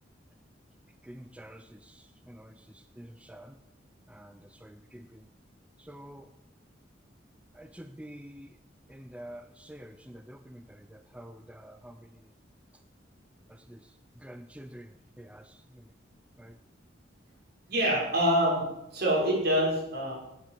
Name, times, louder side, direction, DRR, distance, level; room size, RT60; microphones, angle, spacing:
voice 1, 1.0-3.6 4.1-5.3 5.8-6.3 7.5-8.6 8.9-12.3 13.5-15.9 16.4-16.6, equal, 5° right, 9 dB, 0.6 m, -48 dB
voice 2, 17.7-18.7 18.9-20.1, equal, 60° right, -3 dB, 6.4 m, -25 dB
18.0 x 9.0 x 7.8 m, 0.91 s
head